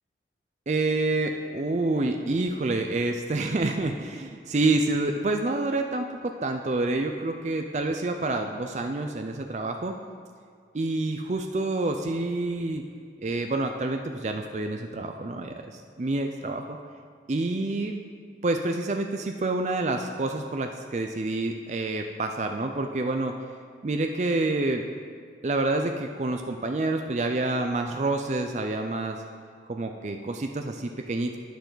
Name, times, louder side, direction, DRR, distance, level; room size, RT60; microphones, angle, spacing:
voice 1, 0.7-10.0 10.7-12.8 13.2-16.8 17.3-17.9 18.4-23.3 23.8-24.8 25.4-29.2 29.7-31.4, right 2 dB, 40° right, 5 dB, 0.4 m, -28 dB
11.5 x 9.1 x 4.0 m, 2.1 s
head